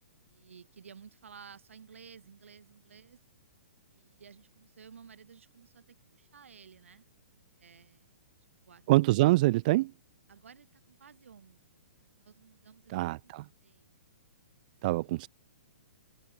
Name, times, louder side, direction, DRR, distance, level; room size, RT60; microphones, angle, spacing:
voice 1, 0.3-3.2 3.9-7.0 7.6-8.2 8.6-9.1 10.3-13.3 13.6-13.9 14.9-15.3, right 6 dB, 85° right, 5.5 m, -55 dB
voice 2, 8.9-9.9 12.9-13.4 14.8-15.3, right 19 dB, 40° right, 0.5 m, -25 dB
hypercardioid pair, 150°, 7 cm